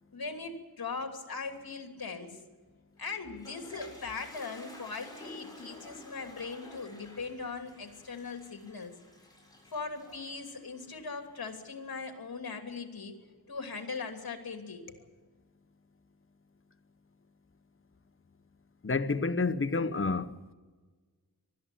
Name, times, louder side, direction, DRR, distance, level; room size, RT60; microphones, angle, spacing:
voice 1, 0.1-2.4 3.0-8.9 9.7-13.2 13.5-15.0, left 4 dB, 70° left, 2.9 m, -40 dB
Toilet flush, 3.0-11.8, left 1 dB, 10° left, 7.6 m, -52 dB
voice 2, 18.8-20.4, left 3 dB, 35° left, 1.1 m, -29 dB
20.0 x 13.0 x 10.0 m
wide cardioid pair, 80°, 37 cm